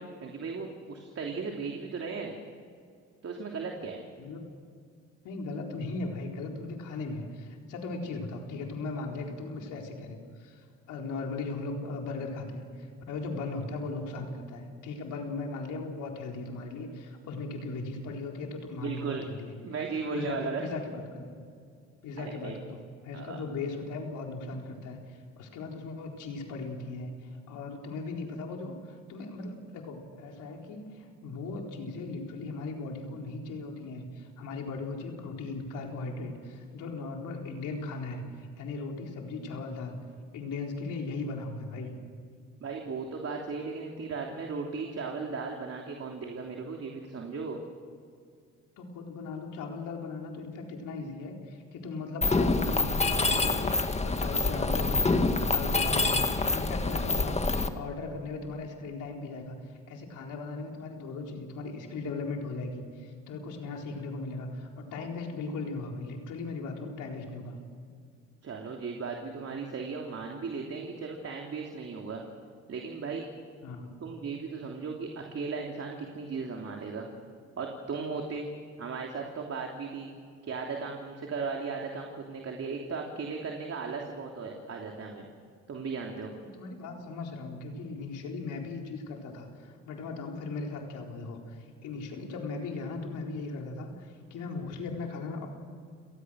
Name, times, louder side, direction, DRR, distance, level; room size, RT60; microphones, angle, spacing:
voice 1, 0.0-2.4 3.2-4.0 18.8-19.2 19.6-20.7 22.2-22.5 23.1-23.4 42.6-47.6 68.4-72.2 72.7-73.2 74.0-77.1 77.6-78.5 78.8-80.1 80.4-85.3 85.7-86.3, right 4 dB, 50° right, 1 dB, 3.2 m, -36 dB
voice 2, 5.2-19.5 20.1-21.4 22.0-27.1 27.5-40.0 40.3-41.9 48.8-55.2 55.5-57.4 57.7-59.6 59.9-67.6 73.6-73.9 86.4-95.5, left 3 dB, 85° left, 1 dB, 4.3 m, -38 dB
Mechanisms, 52.2-57.7, left 3 dB, 20° left, 1.8 m, -26 dB
29.5 x 19.0 x 6.4 m, 2.2 s
cardioid pair, 90°, 30 cm